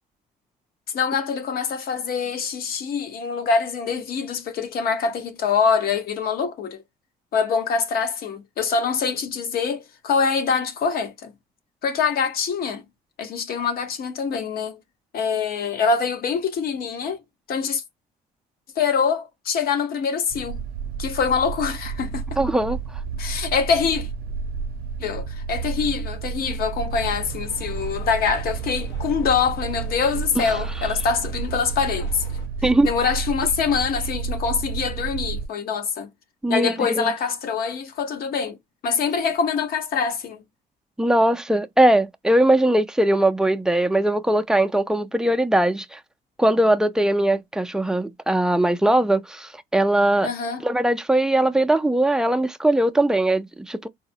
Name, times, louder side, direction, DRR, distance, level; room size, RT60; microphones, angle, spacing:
voice 1, 0.9-6.8 7.3-11.3 11.8-12.8 13.2-14.8 15.1-17.2 17.5-17.8 18.8-20.6 21.0-22.2 23.2-24.1 25.0-32.2 32.8-36.1 36.5-38.6 38.8-40.4 50.2-50.6, left 6 dB, 60° left, 0.9 m, -24 dB
sound 1, 20.3-35.5, right 5 dB, 65° right, 0.6 m, -31 dB
voice 2, 22.4-22.8 30.4-30.5 32.6-32.9 36.4-37.1 41.0-46.0 46.4-50.3 50.6-53.9, right 1 dB, 5° right, 0.4 m, -20 dB
sound 2, 26.9-32.5, equal, 90° left, 1.2 m, -41 dB
4.0 x 2.1 x 2.7 m
cardioid pair, 110°, 17 cm